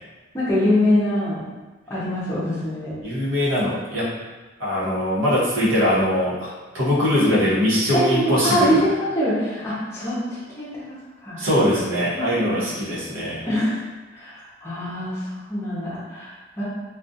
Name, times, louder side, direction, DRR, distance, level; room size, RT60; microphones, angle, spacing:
voice 1, 0.3-1.4 1.9-3.0 7.9-10.9 11.2-11.4 12.1-12.6 13.4-13.8 14.1-16.6, equal, 15° left, -10 dB, 0.6 m, -24 dB
voice 2, 3.0-4.1 4.6-8.8 11.4-13.5, equal, 80° right, -8 dB, 0.9 m, -21 dB
2.4 x 2.3 x 2.6 m, 1.2 s
head